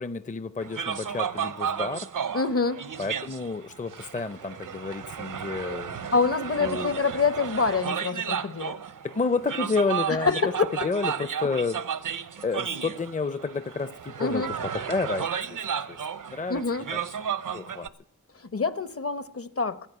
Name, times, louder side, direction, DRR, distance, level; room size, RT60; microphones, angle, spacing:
voice 1, 0.0-2.1 3.0-6.0 6.6-6.9 9.0-10.3 10.8-11.8 12.4-16.0 16.3-16.6 16.9-17.0 17.5-17.9, left 4 dB, 25° left, 12 dB, 0.6 m, -30 dB
sound 1, 0.6-17.9, right 8 dB, 85° right, 0.7 m, -33 dB
voice 2, 2.3-2.8 6.1-8.8 10.2-10.9 14.2-14.5 16.5-16.9 18.4-19.9, left 4 dB, 45° left, 12 dB, 0.9 m, -26 dB
15.5 x 10.5 x 8.1 m, 0.81 s
cardioid pair, 45°, 31 cm